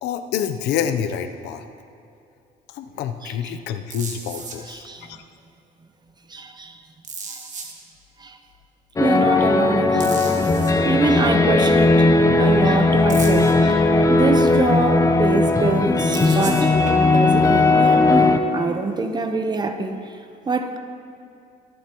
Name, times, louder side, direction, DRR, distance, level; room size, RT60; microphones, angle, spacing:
voice 1, 0.0-1.6 2.7-5.2, left 8 dB, 85° left, 7 dB, 0.7 m, -27 dB
sound 1, 3.9-4.6 7.0-7.7 10.0-10.7 13.1-13.5 16.1-17.3 19.7-19.8, right 5 dB, 45° right, 1.5 m, -35 dB
voice 2, 4.7-5.1 6.3-6.7 8.2-8.4 9.0-10.4 10.8-16.7 17.1-20.0 20.5-20.8, right 3 dB, 25° right, 7 dB, 0.8 m, -24 dB
sound 2, 9.0-18.4, left 3 dB, 20° left, 0.7 m, -17 dB
23.5 x 8.0 x 3.0 m, 2.5 s
cardioid pair, 110°, 17 cm